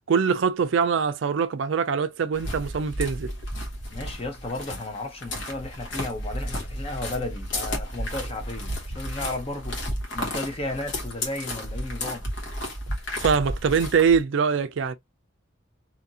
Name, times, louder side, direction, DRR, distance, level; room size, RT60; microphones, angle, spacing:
voice 1, 0.1-3.3 13.2-14.9, right 6 dB, 65° right, 0.4 m, -23 dB
sound 1, 2.3-14.2, equal, 65° left, 1.1 m, -33 dB
voice 2, 3.9-9.8 10.1-12.2, left 2 dB, 30° left, 0.6 m, -34 dB
2.8 x 2.5 x 2.7 m
head